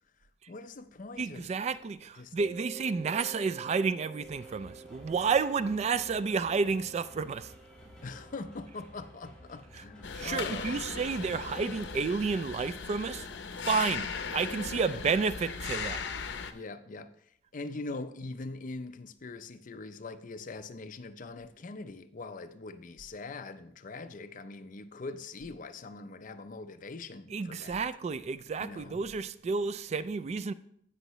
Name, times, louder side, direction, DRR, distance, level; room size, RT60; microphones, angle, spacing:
voice 1, 0.5-1.5 2.1-2.3 8.0-10.8 14.9-15.0 16.5-27.9 28.6-29.0, left 3 dB, 45° left, 0.5 m, -42 dB
voice 2, 1.2-7.5 10.2-13.3 13.7-16.0 27.3-30.5, right 5 dB, 35° right, 0.3 m, -31 dB
Mallet percussion, 2.4-11.0, right 4 dB, 55° right, 1.0 m, -51 dB
sound 1, 4.2-11.8, left 1 dB, 5° left, 2.6 m, -54 dB
sound 2, 10.0-16.5, left 5 dB, 85° left, 0.7 m, -38 dB
16.0 x 5.6 x 3.1 m
head